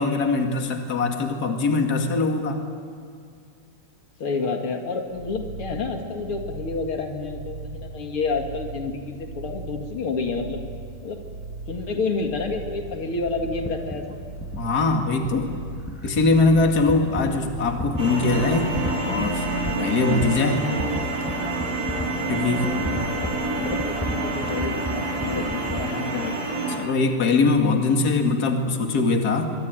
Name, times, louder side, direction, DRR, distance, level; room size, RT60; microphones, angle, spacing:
voice 1, 0.0-2.6 14.6-15.5 16.0-18.7 19.0-19.5 19.8-20.6 22.3-22.7 26.8-29.5, left 3 dB, 45° left, 3 dB, 2.6 m, -22 dB
voice 2, 4.2-10.6 11.0-11.2 11.7-14.1 16.9-17.1 22.4-26.4, left 4 dB, 80° left, 3 dB, 3.1 m, -30 dB
sound 1, 5.1-19.9, right 3 dB, 70° right, 3.7 m, -38 dB
sound 2, 12.9-25.9, left 1 dB, 5° left, 1.1 m, -35 dB
sound 3, 18.0-26.8, right 2 dB, 45° right, 4.8 m, -27 dB
24.0 x 24.0 x 9.2 m, 2.2 s
omnidirectional pair, 2.4 m